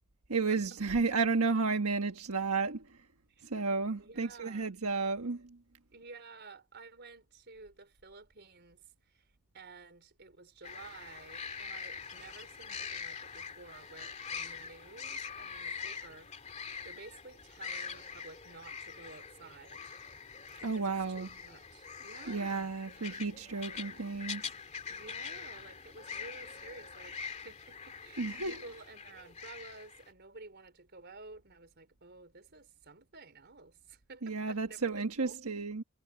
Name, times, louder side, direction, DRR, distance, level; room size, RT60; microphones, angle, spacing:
voice 1, 0.3-3.0 3.4-5.6 20.6-21.3 22.3-24.5 28.2-28.6 34.2-35.8, right 4 dB, 90° right, 1.4 m, -32 dB
voice 2, 4.0-4.7 5.9-20.0 20.6-22.7 24.9-35.4, right 3 dB, 50° right, 4.6 m, -53 dB
sound 1, 10.6-30.1, left 6 dB, 30° left, 2.4 m, -44 dB
head